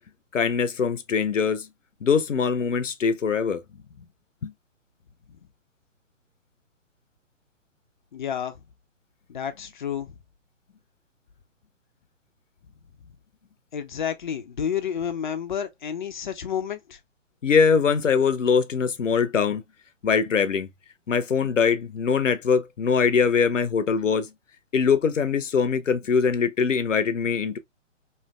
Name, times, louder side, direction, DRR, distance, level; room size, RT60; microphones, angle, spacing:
voice 1, 0.3-1.7 2.0-3.6 4.4-4.5 17.4-19.6 20.0-20.7 21.1-24.3 24.7-27.6, left 6 dB, 75° left, 0.7 m, -22 dB
voice 2, 8.1-8.6 9.3-10.1 13.7-17.0, left 8 dB, 40° left, 0.5 m, -30 dB
3.2 x 2.5 x 2.2 m
figure-of-eight pair, 130°, 38 cm